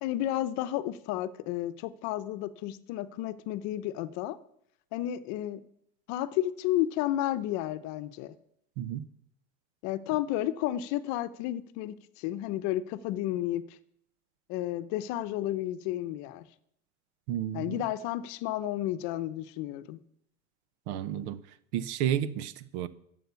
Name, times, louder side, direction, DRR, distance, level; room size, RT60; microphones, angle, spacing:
voice 1, 0.0-4.4 4.9-5.6 6.1-8.3 9.8-13.8 14.5-16.4 17.5-20.0, left 13 dB, 50° left, 0.8 m, -32 dB
voice 2, 17.3-17.8 20.9-21.4 21.7-22.9, right 10 dB, 70° right, 1.0 m, -31 dB
14.0 x 7.8 x 7.0 m
supercardioid pair, 145°, 36 cm